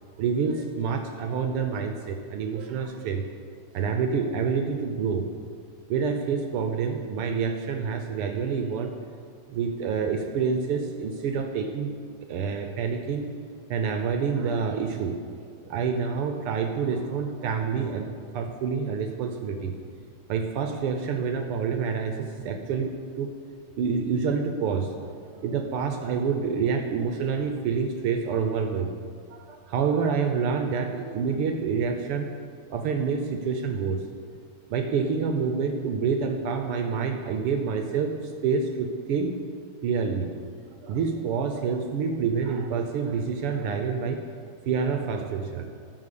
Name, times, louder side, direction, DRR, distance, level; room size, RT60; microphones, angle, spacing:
voice 1, 0.2-3.2 3.7-5.3 5.9-8.9 9.5-11.9 12.3-13.3 13.7-15.2 15.6-18.1 18.3-19.7 20.3-23.3 23.8-24.9 25.2-28.9 29.3-32.3 32.7-34.0 34.7-38.1 38.4-39.3 39.8-40.3 40.8-44.2 44.7-45.7, right 5 dB, 80° right, 5 dB, 1.3 m, -27 dB
15.0 x 6.5 x 6.8 m, 2.1 s
omnidirectional pair, 3.4 m